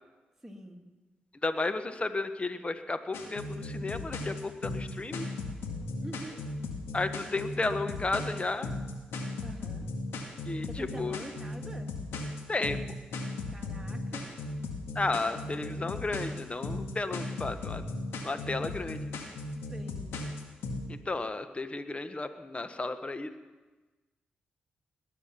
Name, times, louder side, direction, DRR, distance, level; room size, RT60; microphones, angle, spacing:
voice 1, 0.4-0.9 6.0-6.4 9.4-9.8 10.7-11.9 13.5-14.3 15.1-15.8 19.7-20.0, right 1 dB, 5° right, 1 dB, 2.7 m, -45 dB
voice 2, 1.4-5.3 6.9-8.7 10.5-11.2 12.5-12.8 14.9-17.8 18.2-19.0 20.9-23.3, left 3 dB, 30° left, 10 dB, 1.3 m, -33 dB
sound 1, 3.1-20.8, left 2 dB, 75° left, 1.9 m, -36 dB
20.0 x 10.5 x 5.8 m, 1.2 s
hypercardioid pair, 40°, 4 cm